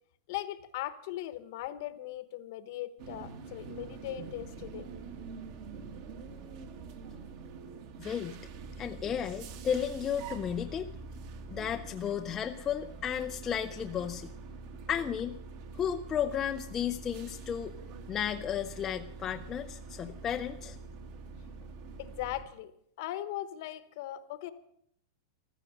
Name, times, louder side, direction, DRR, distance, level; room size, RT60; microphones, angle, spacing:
voice 1, 0.3-4.9 22.0-22.7 23.0-24.5, left 13 dB, 45° left, 1.1 m, -39 dB
sound 1, 3.0-22.4, right 4 dB, 40° right, 1.6 m, -45 dB
voice 2, 8.0-8.3 8.8-10.9 11.5-14.3 14.9-15.4 15.7-17.7 18.1-20.8, left 9 dB, 15° left, 0.5 m, -33 dB
15.0 x 13.0 x 6.6 m
supercardioid pair, 175°, 2 cm